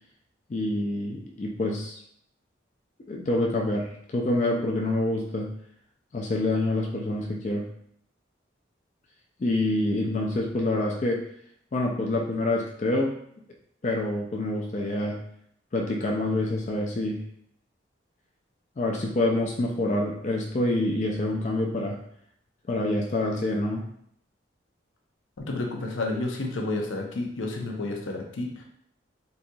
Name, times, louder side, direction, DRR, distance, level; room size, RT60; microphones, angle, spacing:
voice 1, 0.5-2.0 3.1-5.5 6.1-7.6 9.4-11.2 11.7-13.1 13.8-15.2 15.7-17.2 18.8-22.0 22.7-23.8, left 1 dB, 35° left, -1 dB, 0.3 m, -26 dB
voice 2, 25.4-28.6, left 2 dB, 85° left, 1 dB, 0.6 m, -30 dB
4.0 x 2.7 x 2.3 m, 0.70 s
head